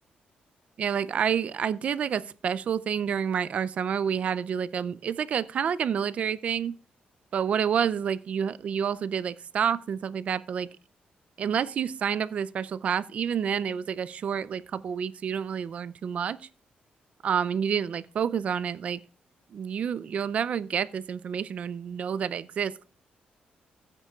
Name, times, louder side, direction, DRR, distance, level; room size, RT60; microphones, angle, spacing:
voice 1, 0.8-6.8 7.3-10.7 11.4-16.4 17.2-19.0 19.5-22.8, right 7 dB, 45° right, 0.4 m, -29 dB
16.0 x 8.9 x 2.3 m
wide cardioid pair, 170°, 3 cm